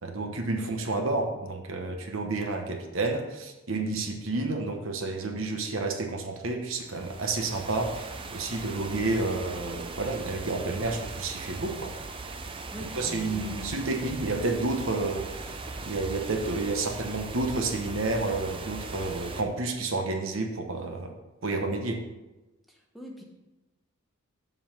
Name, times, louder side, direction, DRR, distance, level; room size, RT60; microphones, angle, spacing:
voice 1, 0.0-11.9 13.0-21.1 21.4-22.0, right 3 dB, 60° right, 4 dB, 1.0 m, -30 dB
sound 1, 6.7-19.4, right 3 dB, 25° right, 0.5 m, -39 dB
voice 2, 12.7-13.6 22.7-23.2, equal, ahead, -1 dB, 1.1 m, -42 dB
7.4 x 5.6 x 5.6 m, 1.0 s
head